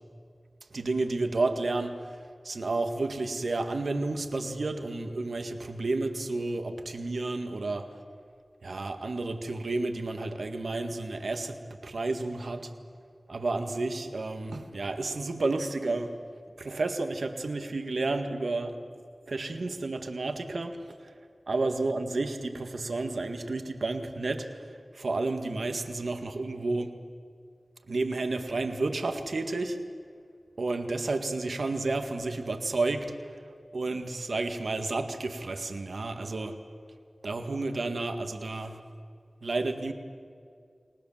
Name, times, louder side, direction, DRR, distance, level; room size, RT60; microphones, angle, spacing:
voice 1, 0.7-2.1 2.4-7.9 8.6-11.6 11.8-12.7 13.3-16.1 16.6-18.8 19.3-20.8 21.5-24.5 24.9-27.0 27.9-29.8 30.6-33.1 33.7-36.6 37.2-38.8 39.4-39.9, right 3 dB, 85° right, 6 dB, 1.8 m, -31 dB
29.5 x 19.5 x 7.4 m, 2.3 s
wide cardioid pair, 45°, 0 cm